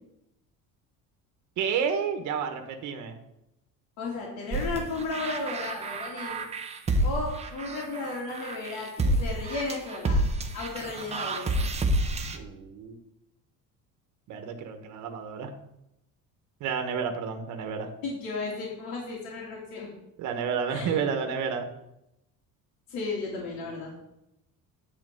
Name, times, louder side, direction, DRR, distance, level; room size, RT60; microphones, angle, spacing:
voice 1, 1.6-3.1 12.3-13.0 14.3-15.5 16.6-17.9 20.2-21.7, right 6 dB, 55° right, 5 dB, 1.2 m, -30 dB
voice 2, 4.0-6.4 7.0-10.2 10.5-11.5 18.0-19.9 20.7-21.1 22.9-23.9, left 3 dB, 85° left, -5 dB, 2.9 m, -34 dB
sound 1, 4.5-12.4, right 1 dB, 20° right, 0.7 m, -29 dB
9.9 x 4.4 x 7.7 m, 0.85 s
cardioid pair, 170°, 35 cm